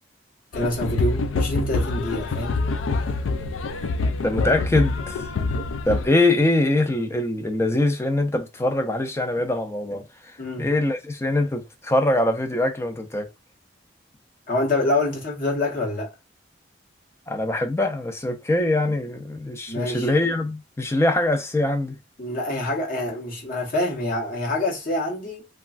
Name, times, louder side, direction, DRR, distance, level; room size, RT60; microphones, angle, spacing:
sound 1, 0.5-6.1, left 3 dB, 90° left, 0.4 m, -26 dB
voice 1, 0.5-2.6 10.4-10.7 14.5-16.1 19.7-20.1 22.2-25.5, left 1 dB, 45° left, 1.0 m, -26 dB
voice 2, 4.2-5.2 5.9-13.3 17.3-22.0, left 1 dB, 15° left, 0.4 m, -23 dB
3.1 x 2.3 x 2.4 m
head